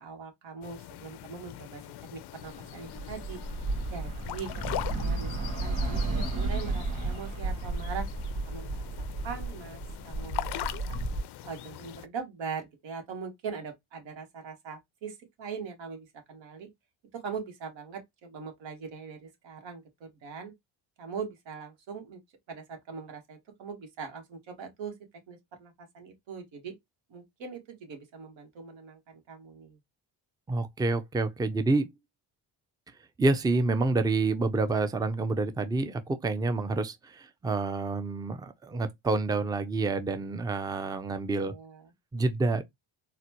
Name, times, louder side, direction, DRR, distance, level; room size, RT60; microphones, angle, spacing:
voice 1, 0.0-3.4 3.9-8.1 8.5-8.9 9.2-11.0 11.4-16.7 17.1-20.5 21.0-22.2 22.5-24.9 25.3-26.7 27.1-29.8 41.4-41.9, right 5 dB, 75° right, 1.4 m, -41 dB
sound 1, 0.6-12.1, left 13 dB, 60° left, 0.5 m, -41 dB
Bus / Traffic noise roadway noise, 2.4-11.2, right 3 dB, 35° right, 1.9 m, -33 dB
voice 2, 30.5-31.9 33.2-41.5 42.1-42.6, right 3 dB, 10° right, 0.4 m, -28 dB
4.1 x 2.1 x 2.8 m
cardioid pair, 100°, 46 cm